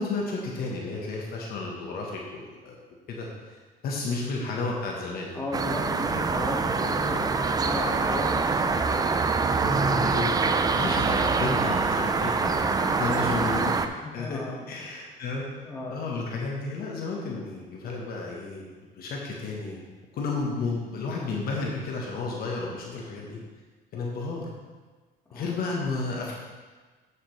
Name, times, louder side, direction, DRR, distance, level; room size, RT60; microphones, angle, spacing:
voice 1, 0.0-2.8 3.1-5.4 9.6-12.6 12.9-13.7 14.1-14.4 14.7-15.5 15.9-18.7 19.0-19.8 20.1-23.4 23.9-24.5 25.3-26.5, left 3 dB, 65° left, -2 dB, 1.4 m, -32 dB
voice 2, 5.3-8.9 12.6-12.9 14.0-14.7 15.6-16.0 25.3-25.5, left 1 dB, 15° left, -4 dB, 2.1 m, -34 dB
sound 1, 5.5-13.9, right 4 dB, 20° right, 0.4 m, -25 dB
8.4 x 7.4 x 3.3 m, 1.4 s
cardioid pair, 110°, 17 cm